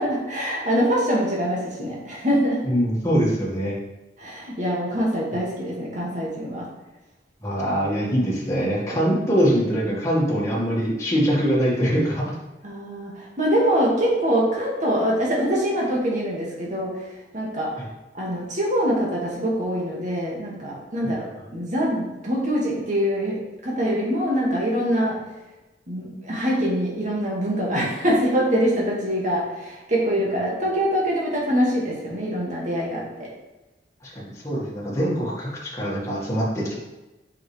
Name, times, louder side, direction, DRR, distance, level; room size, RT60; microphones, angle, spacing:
voice 1, 0.0-2.6 4.2-6.6 12.6-16.9 17.3-17.7 18.1-21.2 21.5-23.4 23.6-25.2 25.9-33.3, equal, 45° right, -4 dB, 2.2 m, -24 dB
voice 2, 2.6-3.8 7.4-12.3 17.8-17.9 34.0-36.8, equal, 15° left, -6 dB, 1.9 m, -23 dB
7.8 x 5.9 x 3.4 m, 1.1 s
head